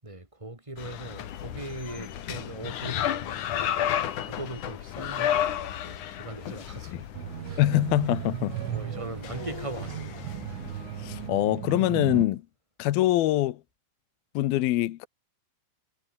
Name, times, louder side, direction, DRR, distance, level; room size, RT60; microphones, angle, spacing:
voice 1, 0.0-3.8 4.2-7.1 7.4-7.8 8.6-10.4, right 2 dB, 5° right, 5.7 m, -40 dB
sound 1, 0.8-11.3, left 10 dB, 55° left, 2.4 m, -33 dB
sound 2, 7.1-12.3, right 11 dB, 85° right, 4.7 m, -35 dB
voice 2, 7.6-8.6 11.0-12.4 12.8-13.6 14.4-15.1, left 15 dB, 70° left, 2.4 m, -24 dB
omnidirectional pair, 5.4 m